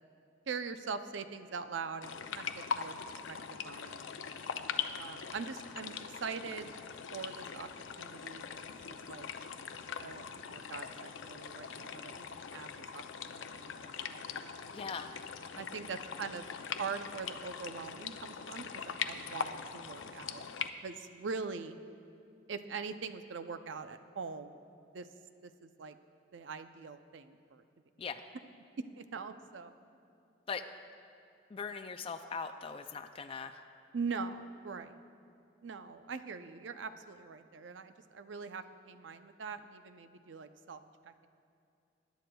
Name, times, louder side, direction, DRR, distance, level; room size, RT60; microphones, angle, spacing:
voice 1, 0.5-2.9 3.3-4.1 5.0-6.7 7.1-7.7 8.0-8.4 8.9-9.3 10.0-13.0 13.3-14.7 15.5-16.4 16.8-20.4 20.8-21.8 22.5-24.6 24.9-25.1 25.4-26.0 26.3-27.6 29.0-29.7 33.9-35.0 35.6-41.3, right 5 dB, 75° right, 10 dB, 0.5 m, -42 dB
sound 1, 2.0-20.7, left 6 dB, 85° left, 0.5 m, -42 dB
voice 2, 14.7-15.1 15.5-15.8 28.0-28.2 30.5-30.6 31.5-33.6, left 5 dB, 30° left, 7 dB, 0.3 m, -40 dB
21.5 x 10.5 x 2.3 m, 2.5 s
head